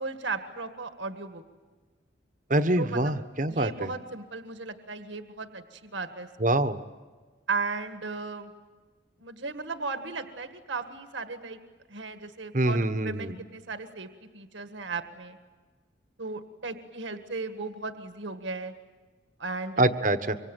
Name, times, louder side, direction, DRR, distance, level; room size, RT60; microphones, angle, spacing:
voice 1, 0.0-1.4 2.8-3.2 3.5-6.3 7.5-8.5 9.2-11.6 11.9-15.4 16.2-18.7 19.4-19.8, right 4 dB, 75° right, 8 dB, 1.7 m, -36 dB
voice 2, 2.5-3.9 6.4-6.8 12.5-13.3 19.8-20.4, right 1 dB, 40° right, 11 dB, 1.2 m, -25 dB
25.0 x 25.0 x 9.2 m, 1.4 s
head